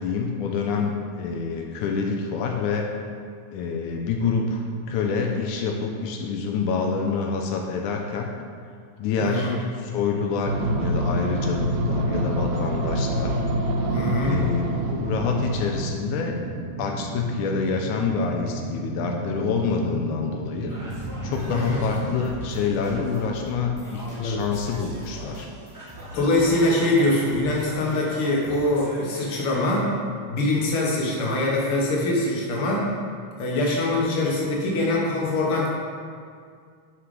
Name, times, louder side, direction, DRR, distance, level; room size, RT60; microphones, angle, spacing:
voice 1, 0.0-2.9 3.5-8.3 9.0-13.4 14.2-16.4 16.8-20.7 21.2-25.5, left 5 dB, 85° left, 2 dB, 2.1 m, -27 dB
voice 2, 9.2-9.5 13.9-14.4 21.5-21.8 24.1-24.4 26.1-29.9 30.3-32.9 33.4-35.7, left 1 dB, 50° left, -3 dB, 2.2 m, -23 dB
sound 1, 10.5-15.9, right 1 dB, 85° right, 2.3 m, -26 dB
sound 2, 13.1-24.0, right 3 dB, 65° right, 1.8 m, -35 dB
Singing, 20.7-29.8, equal, 20° right, 0.4 m, -39 dB
11.5 x 6.1 x 3.8 m, 2.1 s
omnidirectional pair, 3.5 m